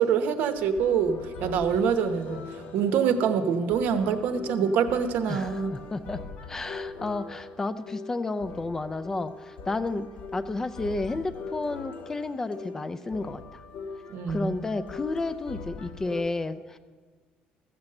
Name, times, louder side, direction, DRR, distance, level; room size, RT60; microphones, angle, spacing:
voice 1, 0.0-2.4 2.7-5.7 14.1-14.6, right 7 dB, 70° right, 10 dB, 1.0 m, -25 dB
sound 1, 0.5-16.2, left 4 dB, 55° left, 1.2 m, -41 dB
voice 2, 5.3-6.2 6.5-10.1 10.3-13.6 14.3-16.8, left 3 dB, 15° left, 12 dB, 0.4 m, -31 dB
14.5 x 7.1 x 7.7 m, 1.5 s
cardioid pair, 145°, 3 cm